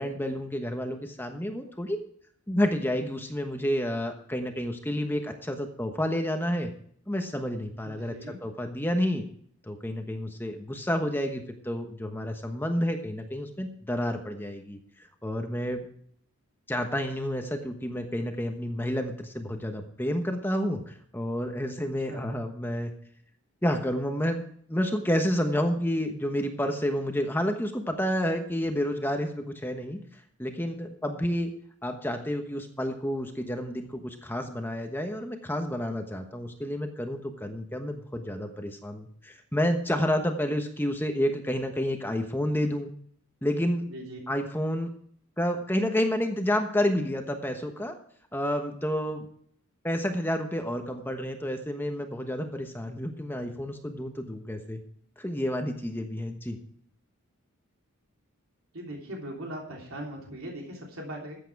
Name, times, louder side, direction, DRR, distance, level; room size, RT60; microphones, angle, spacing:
voice 1, 0.0-2.0 2.5-6.7 7.1-9.2 9.6-14.8 15.2-15.9 16.7-22.9 23.6-24.4 24.7-30.0 30.4-31.5 31.8-42.9 43.4-43.9 44.3-44.9 45.4-48.0 48.3-49.3 49.8-54.8 55.2-56.6, equal, 10° left, 5 dB, 1.1 m, -30 dB
voice 2, 7.8-8.4 22.1-22.3 43.8-44.2 58.7-61.4, right 1 dB, 75° right, -1 dB, 3.2 m, -39 dB
14.0 x 8.6 x 4.7 m, 0.62 s
head